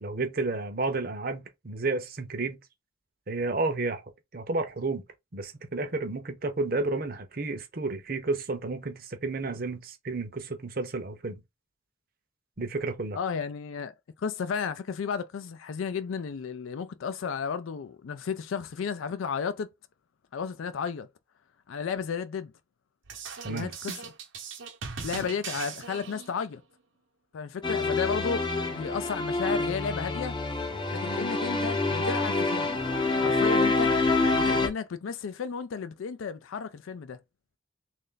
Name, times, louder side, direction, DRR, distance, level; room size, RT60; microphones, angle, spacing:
voice 1, 0.0-2.6 3.3-4.0 4.3-5.0 5.3-11.4 12.6-13.2 23.4-23.7, right 3 dB, 45° right, 0.7 m, -31 dB
voice 2, 13.1-19.7 20.3-21.1 21.7-22.5 23.5-24.1 25.0-26.6 27.3-30.4 30.9-32.8 33.2-33.9 34.3-37.2, left 6 dB, 85° left, 0.4 m, -33 dB
sound 1, 23.0-26.5, right 5 dB, 80° right, 0.9 m, -39 dB
sound 2, 27.6-34.7, left 3 dB, 25° left, 0.5 m, -26 dB
3.2 x 2.5 x 3.8 m
head